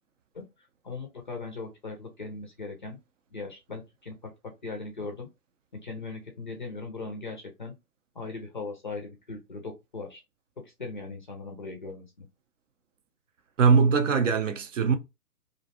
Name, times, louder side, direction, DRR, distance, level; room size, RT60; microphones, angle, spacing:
voice 1, 0.8-3.0 3.3-4.3 4.6-5.3 5.8-7.7 8.1-10.2 10.6-12.3, left 3 dB, 30° left, 0.4 m, -39 dB
voice 2, 13.6-15.0, right 5 dB, 50° right, 0.5 m, -21 dB
2.5 x 2.2 x 2.7 m
hypercardioid pair, 140°, 48 cm